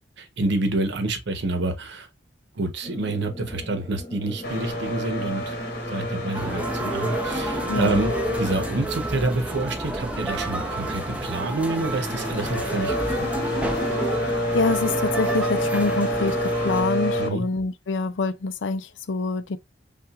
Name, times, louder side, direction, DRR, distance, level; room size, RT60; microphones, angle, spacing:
voice 1, 0.2-2.1 2.5-5.6 5.9-13.1 17.2-17.5, right 2 dB, 65° right, 0.9 m, -28 dB
sound 1, 2.8-15.5, left 1 dB, 25° left, 1.1 m, -42 dB
sound 2, 4.4-17.3, left 1 dB, 60° left, 1.6 m, -29 dB
sound 3, 6.3-16.8, right 2 dB, 5° right, 0.6 m, -30 dB
voice 2, 7.7-8.0 14.5-19.6, left 3 dB, 75° left, 0.5 m, -26 dB
5.6 x 2.5 x 2.3 m
head